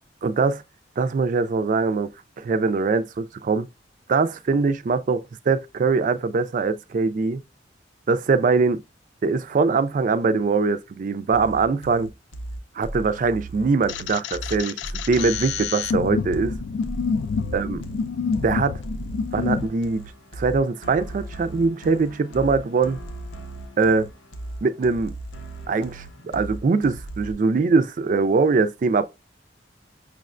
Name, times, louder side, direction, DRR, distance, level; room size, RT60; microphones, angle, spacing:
voice 1, 0.2-0.6 1.0-2.1 2.4-3.7 4.1-7.4 8.1-8.8 9.2-12.1 12.8-14.8 15.1-16.5 17.5-17.8 18.4-18.8 19.3-20.0 20.4-23.0 23.8-24.1 24.6-25.1 25.7-29.0, right 4 dB, 45° right, 0.3 m, -22 dB
sound 1, 11.3-27.3, right 2 dB, 90° left, 0.7 m, -37 dB
sound 2, 13.9-19.7, left 5 dB, 65° left, 0.3 m, -28 dB
6.2 x 2.1 x 2.4 m
head